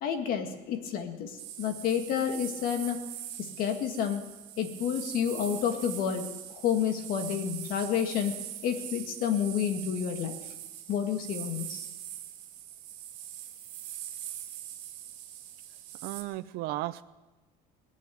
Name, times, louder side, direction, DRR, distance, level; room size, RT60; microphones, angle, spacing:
voice 1, 0.0-3.1 3.4-4.2 4.6-8.3 8.6-10.4 10.9-11.9, left 8 dB, 60° left, 6 dB, 2.0 m, -30 dB
sound 1, 1.4-16.2, right 11 dB, 85° right, 3.0 m, -42 dB
voice 2, 16.0-17.0, right 17 dB, 70° right, 15 dB, 0.7 m, -34 dB
20.5 x 7.4 x 9.4 m, 1.1 s
cardioid pair, 140°, 17 cm